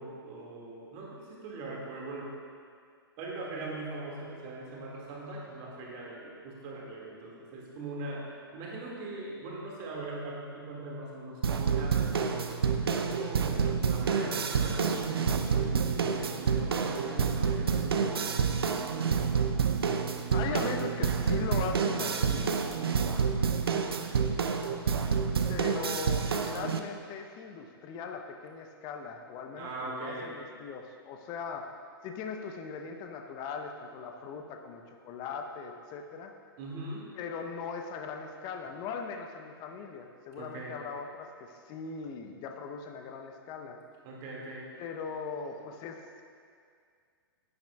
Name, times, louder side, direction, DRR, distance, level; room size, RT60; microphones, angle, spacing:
voice 1, 0.0-2.3 3.2-8.3 8.5-12.5 12.8-18.1 29.5-30.4 36.6-37.1 40.4-40.8 44.0-44.6, right 2 dB, 35° right, -3 dB, 2.0 m, -41 dB
sound 1, 11.4-26.8, right 6 dB, 70° right, 0.6 m, -28 dB
voice 2, 20.3-22.5 25.5-31.7 32.0-36.3 37.2-43.8 44.8-46.2, left 5 dB, 30° left, 4 dB, 0.8 m, -39 dB
10.0 x 9.6 x 2.3 m, 2.2 s
figure-of-eight pair, 110°, 13 cm